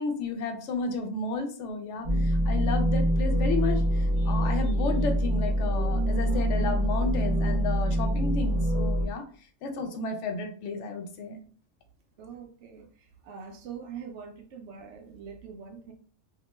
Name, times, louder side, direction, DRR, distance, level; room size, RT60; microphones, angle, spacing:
voice 1, 0.0-9.2 9.6-11.4, left 4 dB, 70° left, 4 dB, 0.9 m, -32 dB
sound 1, 2.0-9.1, equal, 45° right, 0.5 m, -25 dB
voice 2, 12.2-12.9 13.2-15.9, right 6 dB, 65° right, 5 dB, 0.8 m, -43 dB
2.8 x 2.1 x 3.0 m, 0.44 s
omnidirectional pair, 1.4 m